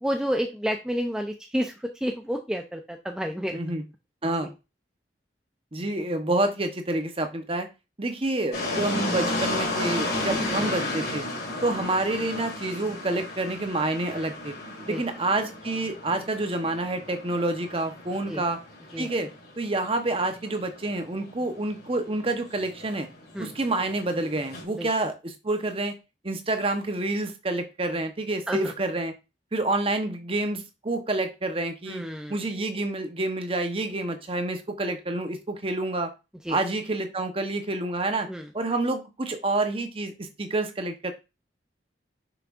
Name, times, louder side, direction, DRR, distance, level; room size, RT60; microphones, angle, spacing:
voice 1, 0.0-3.6 10.4-10.9 14.9-15.0 18.3-18.4 18.9-19.1 23.3-23.5 24.7-24.9 28.5-28.7 31.9-32.4 36.4-36.6 38.3-38.5, equal, 5° right, 3 dB, 0.5 m, -30 dB
voice 2, 3.5-3.8 4.2-4.5 5.7-7.7 8.0-11.2 11.6-14.5 14.9-18.6 19.0-19.3 19.6-23.1 23.4-26.0 26.2-29.1 29.5-32.0 32.3-36.1 36.5-38.3 38.5-41.1, right 2 dB, 30° right, 7 dB, 0.9 m, -28 dB
sound 1, 8.5-24.6, left 2 dB, 55° left, 3.2 m, -33 dB
6.4 x 6.0 x 2.5 m, 0.27 s
head